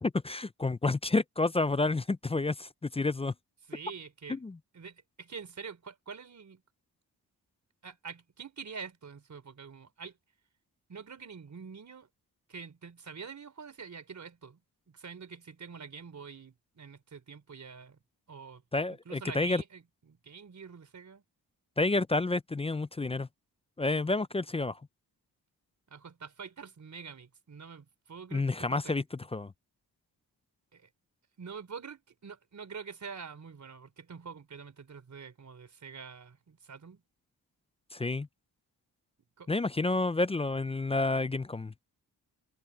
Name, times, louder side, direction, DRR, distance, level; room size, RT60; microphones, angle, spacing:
voice 1, 0.0-3.3 4.3-4.6 18.7-19.6 21.8-23.3 23.8-24.8 28.3-29.5 37.9-38.3 39.5-41.7, left 3 dB, 15° left, 0.4 m, -29 dB
voice 2, 3.7-4.4 4.7-6.6 7.8-10.2 10.9-12.1 12.5-14.6 14.9-18.0 18.3-18.6 18.9-21.2 25.9-29.0 30.7-30.9 31.4-37.0 39.4-39.5, right 6 dB, 45° right, 4.2 m, -46 dB
cardioid pair, 100°, 38 cm